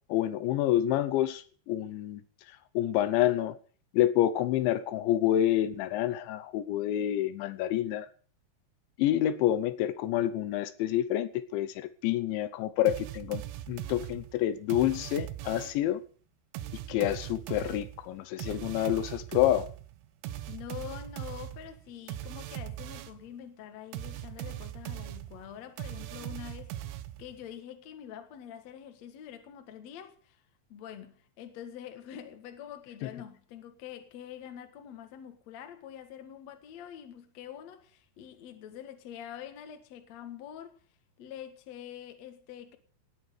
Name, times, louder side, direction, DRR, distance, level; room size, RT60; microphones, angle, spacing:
voice 1, 0.1-2.2 2.7-3.6 3.9-8.1 9.0-16.0 16.9-19.7 33.0-33.1, left 12 dB, 80° left, 3.1 m, -28 dB
sound 1, 12.9-15.9 16.5-23.3 23.9-27.4, right 13 dB, 85° right, 3.4 m, -40 dB
voice 2, 20.5-30.4 30.7-40.8 41.2-42.8, left 10 dB, 60° left, 1.9 m, -45 dB
18.5 x 9.0 x 6.6 m
omnidirectional pair, 5.4 m